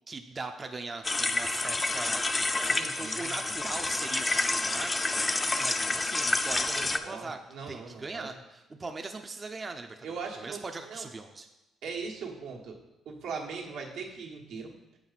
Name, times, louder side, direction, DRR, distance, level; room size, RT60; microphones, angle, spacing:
voice 1, 0.1-2.2 2.6-7.4 7.7-11.5, right 3 dB, 30° right, 5 dB, 0.5 m, -40 dB
sound 1, 1.0-7.0, left 2 dB, 20° left, 0.5 m, -29 dB
voice 2, 2.6-3.3 3.8-3.9 6.7-8.3 10.0-11.1 11.8-12.8 13.0-14.7, right 5 dB, 85° right, -1 dB, 1.2 m, -40 dB
7.1 x 6.0 x 4.0 m, 0.96 s
cardioid pair, 90°, 0 cm